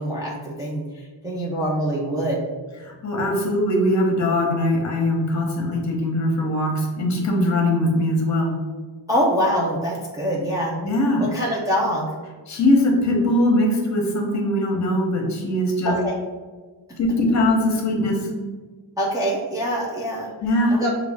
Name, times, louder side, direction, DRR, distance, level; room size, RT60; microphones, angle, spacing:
voice 1, 0.0-2.4 9.1-10.8 11.2-12.1 15.8-16.2 19.0-20.3 20.7-20.9, equal, 10° right, -5 dB, 0.5 m, -24 dB
voice 2, 2.8-8.5 10.8-11.2 12.5-15.9 17.0-18.2 20.4-20.8, left 1 dB, 40° left, 0 dB, 1.0 m, -21 dB
6.0 x 2.4 x 3.5 m, 1.4 s
cardioid pair, 160°, 43 cm